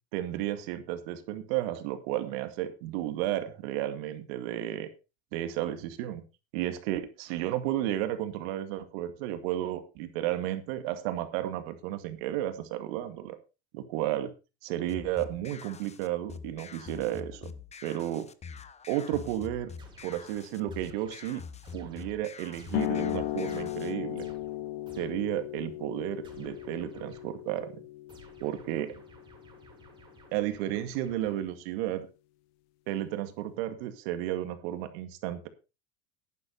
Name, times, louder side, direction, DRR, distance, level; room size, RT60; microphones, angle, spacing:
voice 1, 0.1-4.9 5.3-6.2 6.5-13.4 13.7-14.3 14.6-17.5 17.8-18.3 18.9-19.7 20.0-21.4 21.7-24.3 25.0-27.8 28.4-29.0 30.3-32.1 32.9-35.5, right 13 dB, 70° right, 9 dB, 2.2 m, -33 dB
sound 1, 14.9-23.9, left 5 dB, 20° left, 0.9 m, -45 dB
sound 2, 19.8-25.4 26.2-27.5 28.1-31.8, right 1 dB, 15° right, 5.2 m, -56 dB
sound 3, 22.7-29.9, left 16 dB, 70° left, 0.9 m, -36 dB
11.0 x 10.0 x 4.2 m, 0.30 s
supercardioid pair, 105°, 32 cm